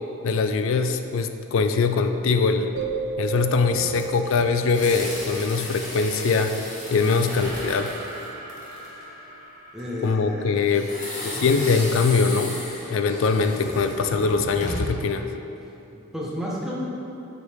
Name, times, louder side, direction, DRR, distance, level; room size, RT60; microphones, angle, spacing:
voice 1, 0.2-2.7 3.2-6.5 6.9-7.9 10.0-10.9 11.2-12.5 12.9-15.2, left 4 dB, 65° left, 8 dB, 0.4 m, -22 dB
sound 1, 2.8-5.4, right 8 dB, 70° right, 0.6 m, -33 dB
sound 2, 3.6-9.0 10.7-15.1, left 1 dB, 35° left, 1.1 m, -35 dB
sound 3, 6.4-11.5, right 1 dB, 35° right, 1.1 m, -41 dB
voice 2, 8.8-9.3 9.7-10.6 11.2-11.5 15.9-16.8, equal, ahead, -6 dB, 1.0 m, -33 dB
7.9 x 4.9 x 3.5 m, 2.9 s
head